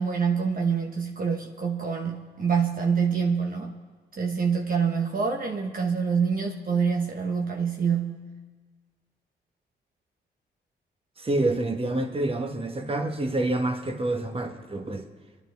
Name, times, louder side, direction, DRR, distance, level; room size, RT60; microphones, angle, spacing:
voice 1, 0.0-3.7 4.2-8.3, right 6 dB, 50° right, 1 dB, 1.2 m, -26 dB
voice 2, 11.2-15.0, right 2 dB, 30° right, 5 dB, 1.4 m, -27 dB
22.5 x 11.5 x 3.5 m, 1.4 s
cardioid pair, 70°, 19 cm